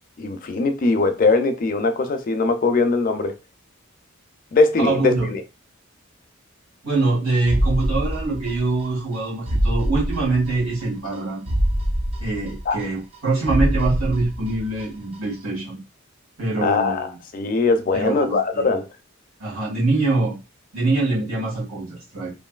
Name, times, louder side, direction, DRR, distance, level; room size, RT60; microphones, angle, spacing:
voice 1, 0.2-3.3 4.5-5.4 12.7-12.8 16.6-17.1 17.3-18.9, left 3 dB, 40° left, 0.4 m, -20 dB
voice 2, 4.8-5.3 6.8-11.4 12.2-15.8 16.4-17.2 17.9-18.7 19.4-20.4 20.7-22.3, right 3 dB, 85° right, 1.7 m, -24 dB
sound 1, 7.5-8.8 9.1-9.2 9.5-10.8 11.1-11.2 11.5-13.2 13.5-14.8 15.1-15.2, equal, 30° right, 0.3 m, -24 dB
3.0 x 2.5 x 2.3 m
head